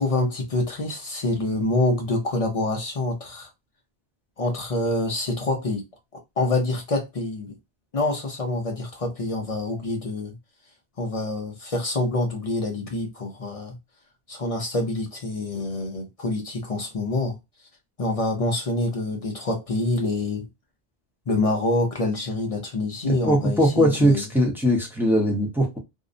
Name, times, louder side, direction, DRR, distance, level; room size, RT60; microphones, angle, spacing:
voice 1, 0.0-3.5 4.4-5.8 6.4-7.6 7.9-10.4 11.0-13.8 14.3-17.4 18.0-20.5 21.3-24.2, left 2 dB, 50° left, 0.4 m, -26 dB
voice 2, 23.0-25.8, equal, ahead, 0.5 m, -21 dB
2.6 x 2.0 x 2.5 m
omnidirectional pair, 1.2 m